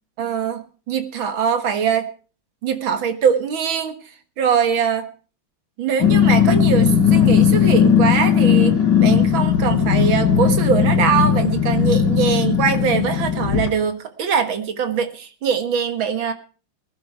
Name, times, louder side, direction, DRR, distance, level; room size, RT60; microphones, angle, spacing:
voice 1, 0.2-2.1 2.6-4.0 4.4-5.1 5.8-16.3, right 7 dB, 75° right, 9 dB, 2.2 m, -22 dB
Growling, 6.0-13.7, left 8 dB, 60° left, 3.1 m, -17 dB
20.0 x 11.0 x 4.7 m, 0.39 s
omnidirectional pair, 2.2 m